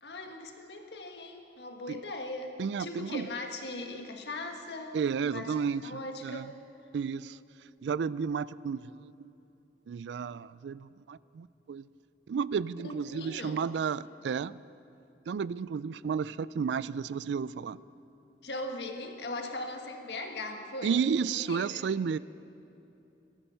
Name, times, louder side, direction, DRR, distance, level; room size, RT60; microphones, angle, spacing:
voice 1, 0.0-5.0 5.3-5.5 5.8-6.5 12.8-13.6 18.4-21.0 21.4-21.8, left 2 dB, 80° left, 4 dB, 1.5 m, -39 dB
voice 2, 2.6-3.3 4.9-6.5 6.9-7.4 7.8-9.3 9.9-11.8 12.3-14.6 15.3-17.8 20.8-22.2, right 6 dB, 90° right, 19 dB, 0.3 m, -32 dB
19.5 x 13.0 x 5.6 m, 2.9 s
head